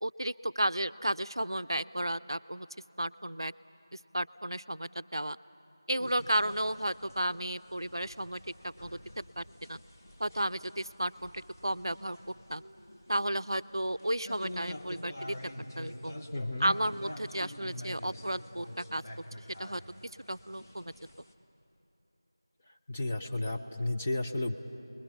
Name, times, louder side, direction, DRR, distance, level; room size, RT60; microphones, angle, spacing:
voice 1, 0.0-2.7 3.0-3.5 4.1-5.4 5.9-9.8 10.2-12.2 12.5-12.6 13.1-15.4 15.8-16.2 16.6-19.0 19.6-19.8 20.3-20.9, right 1 dB, 80° right, 15 dB, 0.5 m, -33 dB
sound 1, 6.0-21.3, left 1 dB, 45° left, 1.6 m, -47 dB
voice 2, 16.3-16.7 22.9-24.5, left 2 dB, 15° left, 3 dB, 0.5 m, -32 dB
28.5 x 21.0 x 7.0 m, 2.9 s
figure-of-eight pair, 170°, 2 cm